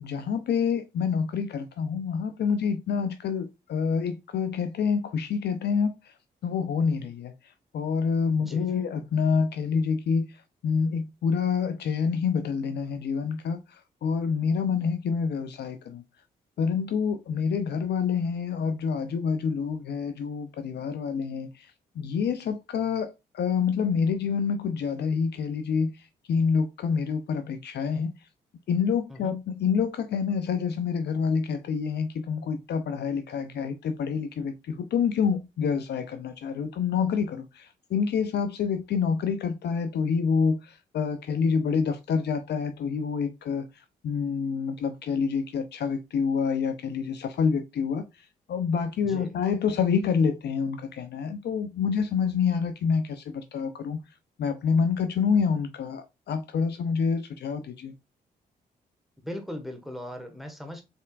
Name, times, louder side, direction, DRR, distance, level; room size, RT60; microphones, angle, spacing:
voice 1, 0.0-6.1 6.4-7.3 7.7-10.3 10.6-16.0 16.6-21.7 22.0-28.1 28.7-43.7 44.0-48.0 48.5-54.0 54.4-57.9, left 6 dB, 60° left, 0.5 m, -27 dB
voice 2, 8.4-8.8 29.1-29.3 49.0-49.3 59.2-60.8, left 1 dB, ahead, 1.4 m, -39 dB
4.2 x 3.4 x 2.4 m
supercardioid pair, 50°, 19 cm